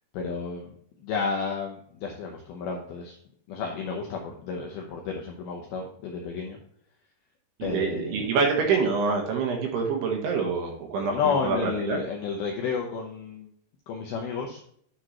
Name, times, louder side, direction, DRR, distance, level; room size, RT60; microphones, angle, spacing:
voice 1, 0.1-0.7 1.0-3.2 3.5-6.6 7.6-8.3 11.1-13.5 13.9-14.6, left 5 dB, 80° left, 0 dB, 2.2 m, -31 dB
voice 2, 7.6-12.0, right 5 dB, 70° right, 2 dB, 2.9 m, -26 dB
10.0 x 4.7 x 3.0 m, 0.66 s
omnidirectional pair, 5.5 m